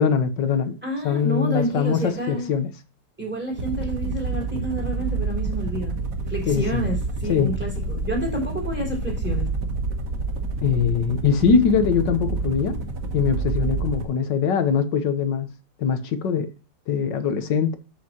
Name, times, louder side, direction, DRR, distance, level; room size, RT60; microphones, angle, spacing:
voice 1, 0.0-0.7 1.0-2.7 6.5-6.8 7.3-7.5 10.6-12.8 13.1-15.5 15.8-16.5 16.9-17.8, left 6 dB, 75° left, 1.7 m, -22 dB
voice 2, 0.8-2.5 3.2-6.0 6.3-9.5, right 1 dB, 5° right, 3.3 m, -29 dB
sound 1, 3.5-14.1, right 3 dB, 50° right, 1.4 m, -28 dB
7.7 x 7.3 x 2.9 m
omnidirectional pair, 2.0 m